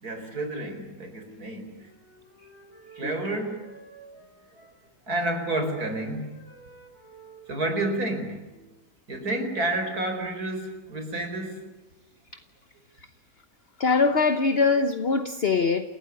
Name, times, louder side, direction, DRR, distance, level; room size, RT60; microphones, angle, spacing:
voice 1, 0.0-1.9 2.9-3.6 5.1-6.3 7.5-8.4 9.1-11.7, right 2 dB, 65° right, 6 dB, 5.0 m, -30 dB
Wind instrument woodwind instrument, 1.3-9.0, right 3 dB, 15° left, 7.4 m, -52 dB
voice 2, 13.8-15.9, left 4 dB, 40° left, 9 dB, 1.2 m, -22 dB
29.0 x 16.5 x 9.7 m, 1.1 s
omnidirectional pair, 1.7 m